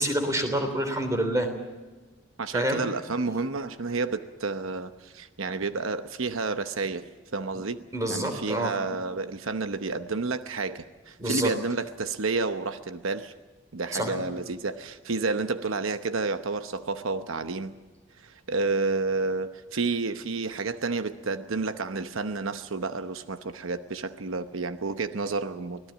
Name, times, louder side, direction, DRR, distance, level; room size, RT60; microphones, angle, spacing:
voice 1, 0.0-1.5 2.5-2.8 7.9-8.7 11.2-11.5 13.9-14.2, right 1 dB, 15° right, 6 dB, 3.3 m, -27 dB
voice 2, 2.4-7.8 8.1-13.3 13.7-17.7 18.2-25.8, right 3 dB, 80° right, 10 dB, 0.9 m, -30 dB
24.5 x 18.0 x 7.4 m, 1.3 s
head